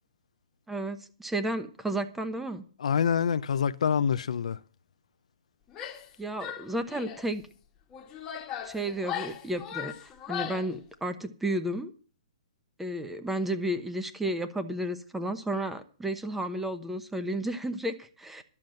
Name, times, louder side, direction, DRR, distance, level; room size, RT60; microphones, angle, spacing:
voice 1, 0.7-2.6 6.2-7.4 8.6-11.9 12.8-18.4, right 1 dB, 5° right, 1.0 m, -32 dB
voice 2, 2.8-4.6, left 7 dB, 75° left, 0.6 m, -26 dB
Female speech woman speaking / Yell, 5.7-6.1 6.4-7.3 7.9-10.7, left 9 dB, 20° left, 1.5 m, -38 dB
12.0 x 7.2 x 7.8 m
hypercardioid pair, 155°, 4 cm